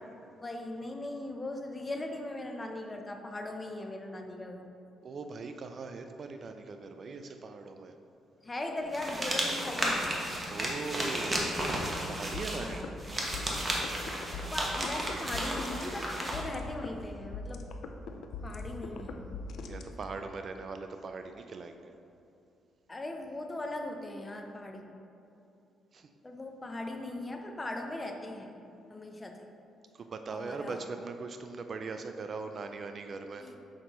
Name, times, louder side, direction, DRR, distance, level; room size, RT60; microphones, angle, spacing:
voice 1, 0.4-4.7 8.4-10.0 12.6-13.0 14.5-17.6 18.4-19.2 22.9-24.9 26.2-28.6 28.9-29.4 30.3-30.8 33.4-33.6, left 2 dB, 20° left, 3 dB, 0.6 m, -39 dB
voice 2, 5.0-7.9 10.5-11.5 12.1-12.8 19.7-21.9 25.9-26.1 29.9-33.5, right 4 dB, 50° right, 7 dB, 0.4 m, -40 dB
sound 1, 8.9-16.4, right 1 dB, 20° right, 1.1 m, -33 dB
sound 2, 12.3-20.3, left 3 dB, 70° left, 0.4 m, -42 dB
6.3 x 5.1 x 3.0 m, 2.8 s
cardioid pair, 90°, 0 cm